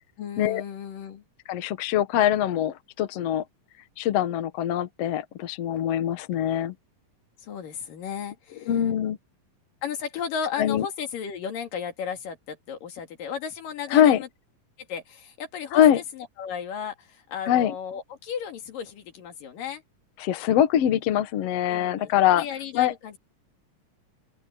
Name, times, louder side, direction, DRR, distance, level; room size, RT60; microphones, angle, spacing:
voice 1, 0.2-1.2 7.4-8.7 9.8-14.3 14.9-19.8 21.7-23.2, left 7 dB, 80° left, 4.0 m, -35 dB
voice 2, 1.5-3.4 4.0-6.7 8.7-9.2 10.6-10.9 13.9-14.2 15.7-16.0 17.5-17.7 20.2-22.5 22.7-22.9, left 10 dB, 60° left, 1.8 m, -23 dB
open air
omnidirectional pair, 3.9 m